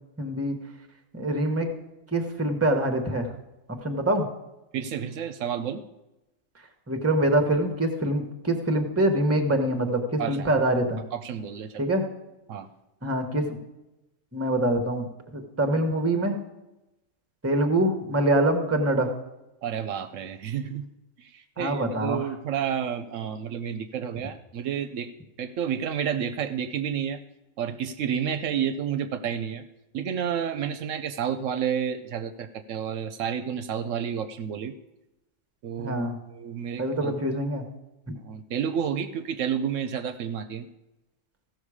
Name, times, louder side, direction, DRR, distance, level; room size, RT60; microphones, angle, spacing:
voice 1, 0.2-0.5 1.1-1.7 2.1-3.3 3.8-4.3 6.9-11.0 11.8-12.0 13.0-13.6 14.3-15.0 15.3-16.4 17.4-19.1 21.6-22.2 35.8-36.2 36.8-37.6, right 1 dB, 10° right, 6 dB, 1.0 m, -24 dB
voice 2, 4.7-5.8 10.2-10.5 11.1-11.8 12.5-12.7 19.6-20.9 21.2-25.1 25.4-27.2 27.6-29.6 29.9-34.7 35.6-37.1 38.2-40.7, right 8 dB, 75° right, 10 dB, 0.9 m, -30 dB
15.5 x 6.3 x 4.9 m, 0.97 s
omnidirectional pair, 1.4 m